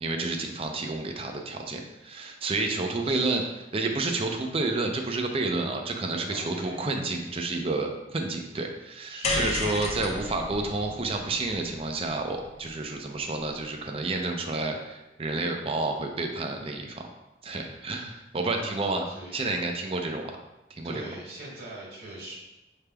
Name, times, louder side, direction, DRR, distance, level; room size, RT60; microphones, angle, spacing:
voice 1, 0.0-3.4 3.7-17.0 17.4-19.1 19.3-20.4 20.7-21.0, right 3 dB, 35° right, 3 dB, 0.5 m, -30 dB
voice 2, 3.0-3.4 5.5-5.9 6.2-6.8 9.1-9.6 18.5-19.4 20.8-22.4, right 1 dB, 60° right, -5 dB, 1.6 m, -42 dB
sound 1, 9.2-13.6, left 2 dB, 40° left, 0.7 m, -34 dB
7.0 x 3.4 x 2.2 m, 1.0 s
head